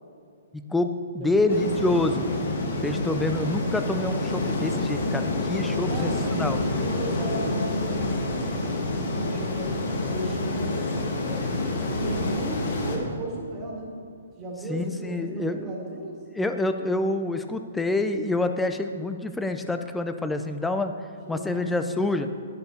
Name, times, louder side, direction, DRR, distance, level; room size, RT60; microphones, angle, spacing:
voice 1, 0.5-2.2 2.8-6.6 14.7-15.7 16.4-20.9 21.3-22.3, left 2 dB, 5° left, 8 dB, 0.4 m, -27 dB
voice 2, 1.2-1.6 1.8-2.2 5.9-6.3 6.8-9.7 10.1-13.9 14.4-16.2 21.3-22.2, right 2 dB, 15° right, -2 dB, 1.8 m, -36 dB
sound 1, 1.5-13.0, left 2 dB, 55° left, 1.8 m, -28 dB
11.0 x 10.5 x 4.1 m, 2.5 s
hypercardioid pair, 175°, 0 cm